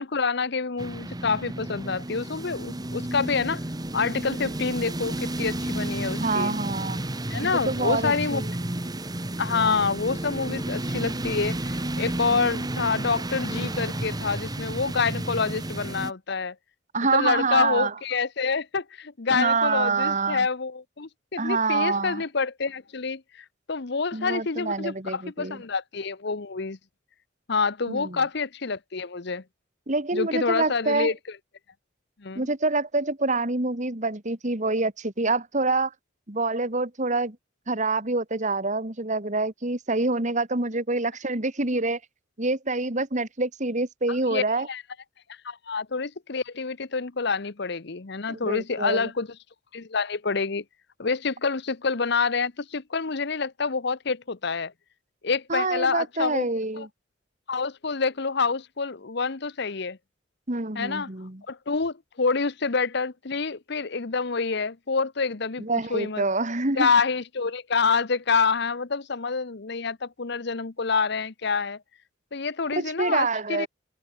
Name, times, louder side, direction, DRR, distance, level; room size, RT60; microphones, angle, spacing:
voice 1, 0.0-3.6 3.9-6.5 7.3-8.4 9.4-16.5 17.1-26.8 27.5-29.4 30.1-31.2 32.2-32.5 44.3-44.8 45.3-49.3 49.7-50.6 51.0-54.7 55.2-56.4 56.7-56.9 57.5-60.0 60.7-61.1 61.5-66.2 66.8-71.8 72.3-73.7, left 4 dB, 60° left, 0.9 m, -27 dB
sound 1, 0.8-16.1, right 1 dB, 20° right, 1.3 m, -32 dB
voice 2, 6.2-7.0 7.7-8.5 16.9-17.9 19.3-20.5 21.4-22.2 24.1-25.6 27.9-28.2 29.9-31.1 32.4-35.9 36.3-37.4 37.7-42.0 42.4-44.7 48.3-49.1 55.5-56.9 60.5-61.4 65.6-66.9 72.8-73.7, right 3 dB, 40° right, 2.2 m, -26 dB
head